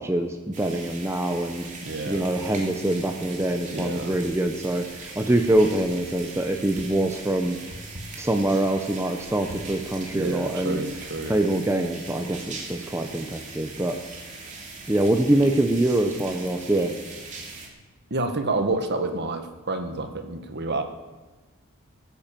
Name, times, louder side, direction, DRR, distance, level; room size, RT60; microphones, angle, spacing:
voice 1, 0.0-1.7 2.1-7.6 8.2-10.8 11.3-14.0 14.9-16.9, right 1 dB, 10° right, 5 dB, 0.8 m, -24 dB
sound 1, 0.5-17.7, right 3 dB, 35° right, 2.9 m, -41 dB
voice 2, 1.8-2.3 3.7-4.1 10.1-11.3 18.1-20.8, right 2 dB, 50° right, 7 dB, 1.4 m, -29 dB
Wind, 3.4-11.4, equal, 90° right, 2.5 m, -48 dB
18.5 x 9.2 x 7.4 m, 1.2 s
head